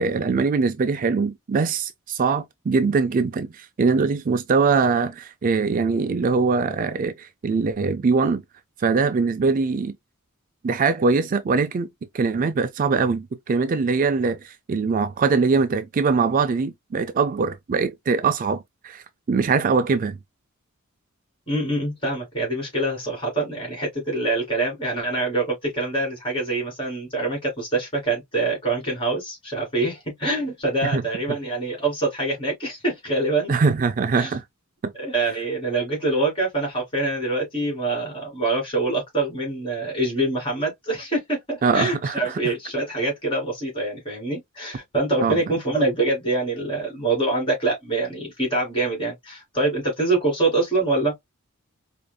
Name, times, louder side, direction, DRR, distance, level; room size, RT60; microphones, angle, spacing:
voice 1, 0.0-8.4 8.8-9.9 10.6-11.9 12.1-20.2 30.8-31.0 33.5-34.4 34.8-34.9 41.6-42.3 45.2-45.4, right 4 dB, 40° right, 0.3 m, -22 dB
voice 2, 21.5-33.5 34.2-34.3 35.0-51.1, right 2 dB, 25° left, 2.5 m, -25 dB
4.8 x 2.5 x 2.2 m
head